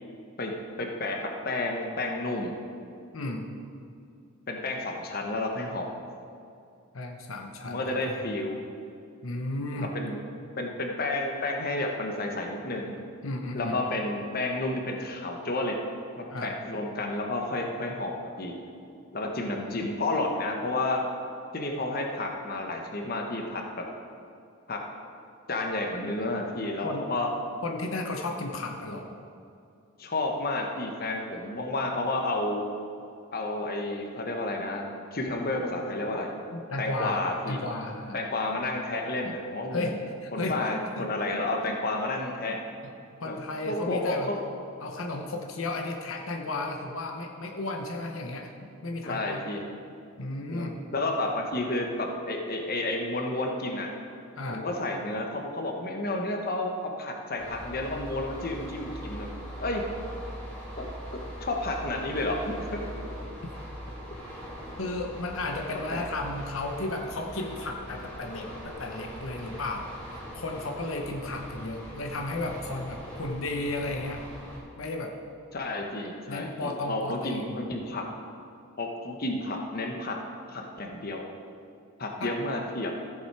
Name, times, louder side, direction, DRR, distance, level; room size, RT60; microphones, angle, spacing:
voice 1, 0.4-2.5 4.5-5.9 7.6-8.6 9.7-10.2 10.6-13.0 13.5-15.8 16.2-18.6 19.1-21.0 21.5-23.8 24.7-24.8 25.5-27.3 30.0-32.7 33.3-34.8 35.1-36.3 36.8-37.6 38.1-39.9 40.3-42.6 43.2-43.4 43.7-44.4 49.0-49.6 50.5-53.9 54.5-59.3 59.6-59.8 60.8-62.8 65.9-66.1 75.5-78.0 78.8-80.1 80.5-81.2 82.0-82.9, left 2 dB, 45° left, 2 dB, 1.1 m, -31 dB
voice 2, 3.1-3.5 6.9-8.2 9.2-9.9 13.2-13.8 16.3-16.5 26.8-27.0 27.6-29.1 36.5-37.2 37.5-38.2 39.7-41.8 43.2-44.3 44.8-48.5 48.8-49.4 50.2-50.8 54.4-54.7 64.8-69.9 70.3-74.2 74.8-75.2 76.3-77.7 82.2-82.3, left 2 dB, 80° left, 2 dB, 1.0 m, -34 dB
sound 1, 57.4-74.6, equal, 5° left, 2.6 m, -41 dB
14.5 x 7.2 x 4.7 m, 2.5 s
head